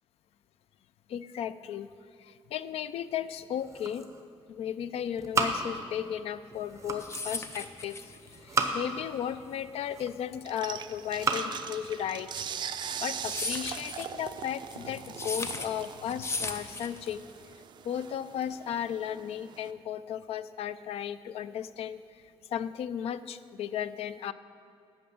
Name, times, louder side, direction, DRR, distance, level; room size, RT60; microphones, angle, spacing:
voice 1, 1.1-1.9 2.2-4.1 4.5-12.3 13.0-17.2 17.8-22.2 22.5-24.3, left 9 dB, 85° left, 15 dB, 0.4 m, -35 dB
sound 1, 3.4-4.4 4.7-6.2 6.5-7.3 8.2-9.1 9.6-10.4 10.9-11.5, right 3 dB, 30° right, 0.8 m, -33 dB
sound 2, 6.6-17.4, left 3 dB, 25° left, 0.6 m, -38 dB
sound 3, 10.5-19.7, right 8 dB, 50° right, 0.4 m, -41 dB
8.8 x 5.9 x 7.8 m, 2.4 s
cardioid pair, 150°, 10 cm